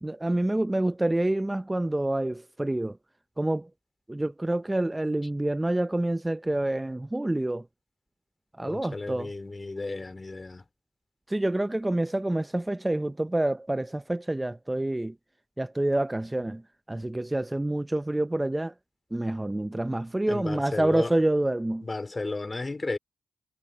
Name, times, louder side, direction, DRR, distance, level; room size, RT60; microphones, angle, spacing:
voice 1, 0.0-3.0 3.4-3.7 4.1-7.7 8.6-9.3 11.3-15.1 15.6-16.6 16.9-18.7 19.1-21.9, right 1 dB, 15° right, 0.6 m, -27 dB
voice 2, 8.7-10.6 20.3-21.1 21.8-23.0, left 3 dB, 30° left, 3.2 m, -33 dB
cardioid pair, 60°, 0 cm